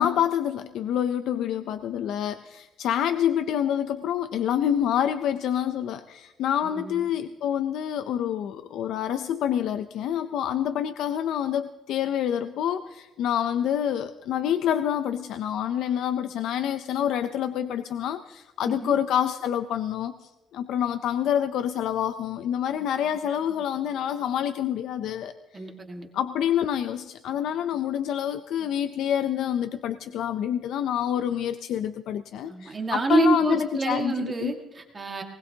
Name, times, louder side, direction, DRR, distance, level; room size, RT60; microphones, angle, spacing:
voice 1, 0.0-25.6 26.1-34.5, left 10 dB, 80° left, 10 dB, 0.6 m, -27 dB
voice 2, 6.6-7.1 18.6-18.9 25.5-26.1 32.4-35.2, right 3 dB, 25° right, 3 dB, 1.8 m, -27 dB
20.0 x 19.5 x 2.9 m, 1.1 s
cardioid pair, 135°, 0 cm